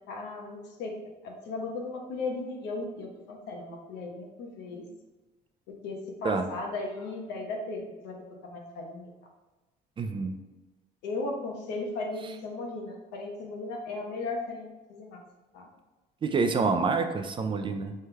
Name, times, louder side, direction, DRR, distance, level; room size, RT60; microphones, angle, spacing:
voice 1, 0.1-0.9 1.2-4.8 5.8-8.1 8.4-9.1 11.0-15.2 15.5-15.7, left 3 dB, 85° left, 1 dB, 0.9 m, -36 dB
voice 2, 10.0-10.3 16.2-17.9, right 4 dB, 30° right, 7 dB, 0.4 m, -27 dB
5.5 x 3.2 x 2.2 m, 1.1 s
cardioid pair, 110°, 17 cm